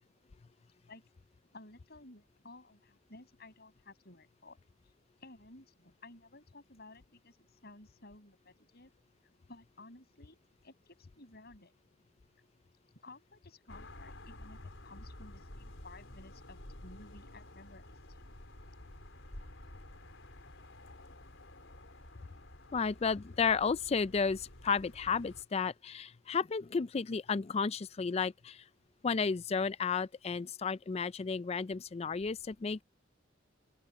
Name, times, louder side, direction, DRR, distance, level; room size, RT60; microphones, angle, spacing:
voice 1, 1.5-4.6 5.2-7.4 7.6-8.9 9.5-11.7 12.9-18.2, left 2 dB, 55° left, 8.0 m, -55 dB
sound 1, 13.7-25.4, left 1 dB, 80° left, 4.6 m, -51 dB
voice 2, 22.7-28.6 29.0-32.8, left 5 dB, 35° left, 0.4 m, -32 dB
open air
head